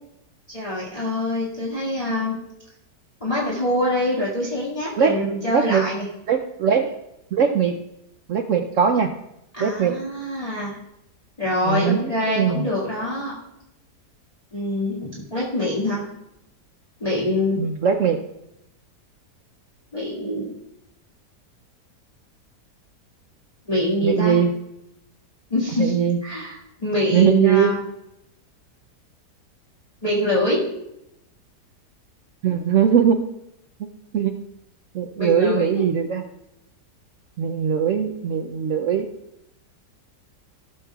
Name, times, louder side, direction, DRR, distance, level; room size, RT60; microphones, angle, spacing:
voice 1, 0.5-2.4 3.2-6.0 9.5-10.7 11.4-13.3 14.5-16.1 17.0-17.6 19.9-20.5 23.7-24.4 25.5-26.0 26.2-27.8 30.0-30.6 35.2-35.8, left 1 dB, 20° left, -5 dB, 2.1 m, -24 dB
voice 2, 5.5-5.8 6.3-6.9 7.3-7.7 8.3-9.1 9.6-10.0 11.7-12.7 17.6-18.2 24.0-24.5 25.8-26.2 27.1-27.7 32.4-33.2 34.1-34.3 34.9-36.2 37.4-39.1, right 7 dB, 65° right, 5 dB, 0.8 m, -20 dB
16.5 x 7.1 x 2.3 m, 0.84 s
omnidirectional pair, 1.8 m